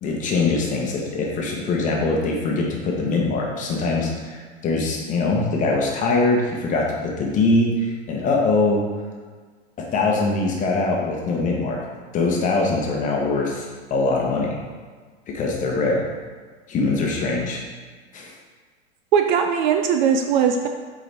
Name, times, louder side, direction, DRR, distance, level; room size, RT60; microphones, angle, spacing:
voice 1, 0.0-8.8 9.9-11.8 12.1-14.6 15.3-16.1 16.7-17.6 18.1-18.3, left 3 dB, 25° left, -1 dB, 1.1 m, -22 dB
voice 2, 19.1-20.7, right 7 dB, 45° right, 5 dB, 0.5 m, -19 dB
6.8 x 4.9 x 3.5 m, 1.5 s
hypercardioid pair, 130°, 34 cm